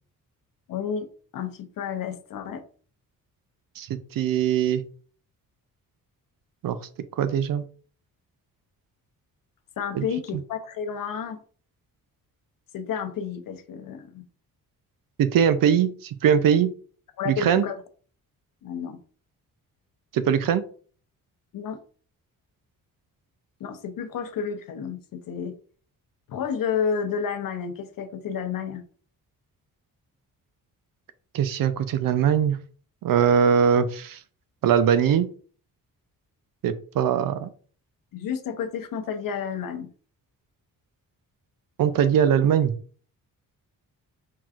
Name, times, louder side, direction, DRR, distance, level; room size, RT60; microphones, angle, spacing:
voice 1, 0.7-1.1 1.3-2.6 9.8-11.4 12.7-14.3 17.2-17.8 18.6-19.0 21.5-21.8 23.6-25.5 26.3-28.8 38.1-39.9, left 7 dB, 70° left, 6 dB, 0.8 m, -31 dB
voice 2, 3.8-4.8 6.6-6.8 7.2-7.6 9.9-10.0 10.3-10.4 15.2-16.7 17.3-17.7 20.1-20.6 31.3-32.6 33.0-34.2 34.6-35.3 36.6-37.5 41.8-42.7, right 8 dB, 70° right, 12 dB, 0.6 m, -21 dB
4.5 x 3.8 x 2.4 m, 0.43 s
cardioid pair, 105°, 35 cm